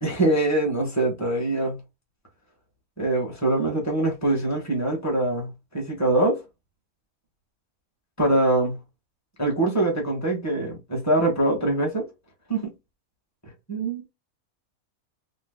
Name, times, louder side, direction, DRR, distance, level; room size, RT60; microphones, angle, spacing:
voice 1, 0.0-1.8 3.0-6.4 8.2-8.8 9.4-12.1 12.5-12.7 13.7-14.1, right 2 dB, 15° left, 1.1 m, -23 dB
3.1 x 2.0 x 3.6 m
omnidirectional pair, 1.5 m